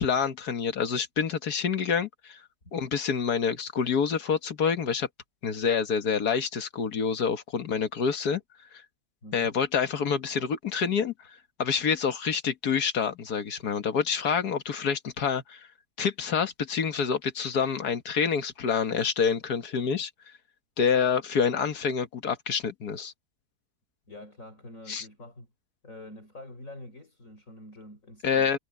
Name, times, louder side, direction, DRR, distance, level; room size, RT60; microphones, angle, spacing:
voice 1, 0.0-2.4 2.7-5.1 5.4-8.4 9.3-11.3 11.6-15.7 16.0-20.1 20.8-23.1 24.9-25.1 28.2-28.6, left 6 dB, 85° left, 2.0 m, -27 dB
voice 2, 9.2-9.5 24.1-25.5 25.8-28.5, left 1 dB, 55° left, 6.6 m, -46 dB
omnidirectional pair, 1.6 m